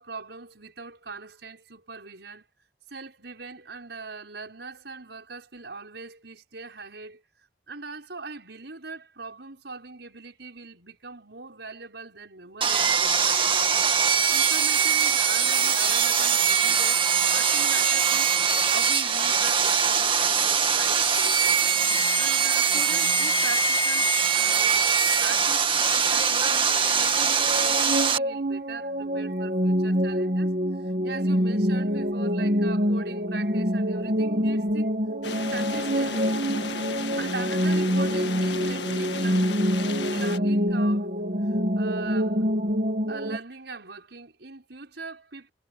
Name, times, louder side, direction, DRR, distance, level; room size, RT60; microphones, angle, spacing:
voice 1, 0.0-2.5 2.9-7.2 7.7-21.6 22.2-24.9 25.2-30.6 30.8-34.9 35.5-36.4 37.2-41.1 41.4-42.5 43.1-45.5, right 3 dB, 70° right, 5.6 m, -41 dB
Sawing, 12.6-28.2, right 6 dB, 30° right, 2.2 m, -22 dB
sound 1, 27.1-43.4, equal, 45° right, 2.0 m, -26 dB
sound 2, 35.2-40.4, left 4 dB, 75° left, 1.7 m, -35 dB
head